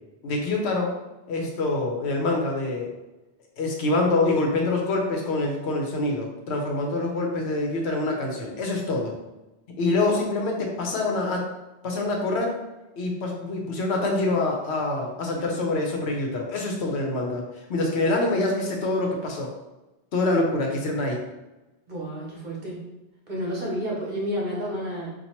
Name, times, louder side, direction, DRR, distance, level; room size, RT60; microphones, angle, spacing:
voice 1, 0.2-0.9 1.3-2.9 3.6-9.1 9.8-11.5 11.8-12.5 13.0-19.5 20.1-21.2, left 2 dB, 75° left, 1 dB, 1.0 m, -25 dB
voice 2, 21.9-22.8 23.3-25.1, equal, 45° right, -4 dB, 1.0 m, -30 dB
2.8 x 2.5 x 4.3 m, 1.0 s
omnidirectional pair, 1.1 m